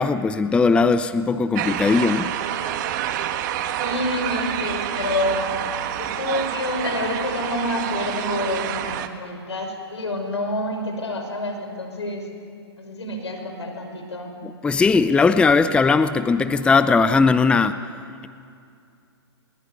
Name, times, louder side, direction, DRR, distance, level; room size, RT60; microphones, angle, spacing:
voice 1, 0.0-2.3 14.4-17.8, left 4 dB, 5° left, 12 dB, 0.6 m, -19 dB
sound 1, 1.5-9.1, right 10 dB, 45° right, 1.6 m, -28 dB
voice 2, 3.8-5.6 6.0-12.3 12.8-14.3, left 1 dB, 85° left, 4 dB, 5.9 m, -28 dB
21.5 x 20.5 x 9.8 m, 2.4 s
hypercardioid pair, 130°, 14 cm